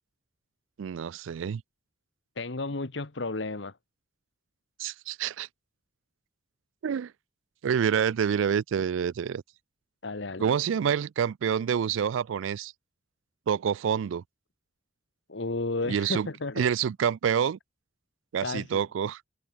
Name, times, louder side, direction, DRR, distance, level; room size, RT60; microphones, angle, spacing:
voice 1, 0.8-1.6 4.8-5.5 6.8-7.1 7.6-9.4 10.4-12.7 13.5-14.2 15.9-16.3 16.6-17.6 18.3-19.2, right 8 dB, 90° right, 0.3 m, -27 dB
voice 2, 2.4-3.7 10.0-10.5 15.3-16.7 18.4-18.8, left 3 dB, 70° left, 1.2 m, -33 dB
head